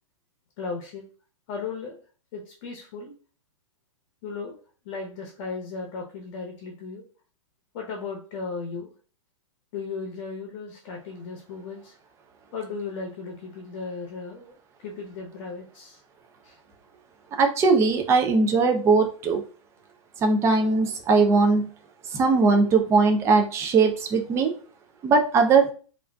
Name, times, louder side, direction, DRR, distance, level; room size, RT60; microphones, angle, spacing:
voice 1, 0.6-1.0 1.5-2.0 2.3-3.1 4.2-4.6 4.8-7.0 7.7-8.9 9.7-11.9 12.5-14.6 14.8-16.0 16.4-16.6, left 4 dB, 45° left, 1 dB, 0.7 m, -36 dB
voice 2, 17.4-19.4 20.2-21.6 22.1-24.5 25.0-25.7, right 4 dB, 15° right, 3 dB, 0.4 m, -20 dB
3.5 x 2.5 x 2.2 m, 0.39 s
hypercardioid pair, 135°, 17 cm